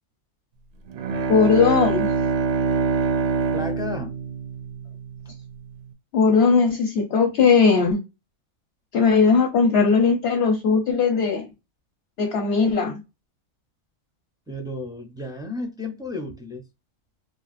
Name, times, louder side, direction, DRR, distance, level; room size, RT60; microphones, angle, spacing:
Bowed string instrument, 0.9-5.4, right 4 dB, 65° right, 0.8 m, -25 dB
voice 1, 1.3-2.1 6.1-8.0 8.9-11.5 12.2-13.0, left 5 dB, 60° left, 0.8 m, -18 dB
voice 2, 3.5-4.1 14.5-16.6, left 2 dB, 5° right, 0.4 m, -32 dB
3.4 x 2.4 x 2.4 m
omnidirectional pair, 1.3 m